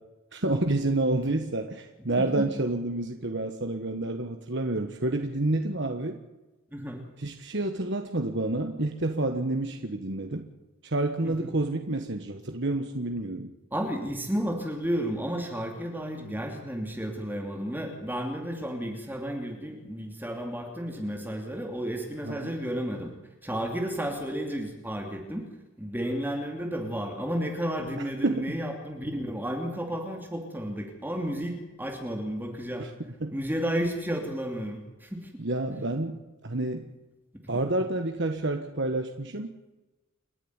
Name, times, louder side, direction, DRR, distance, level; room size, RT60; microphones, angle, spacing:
voice 1, 0.3-6.2 7.2-10.5 10.8-13.5 22.2-22.6 28.2-28.6 32.8-32.9 33.2-33.4 35.4-36.9 37.5-39.5, right 2 dB, 55° right, 5 dB, 1.5 m, -29 dB
voice 2, 6.7-7.1 11.2-11.5 13.7-23.1 23.4-25.5 25.8-32.9 33.3-35.4, equal, 10° right, 2 dB, 2.9 m, -32 dB
29.5 x 11.0 x 9.9 m, 1.1 s
head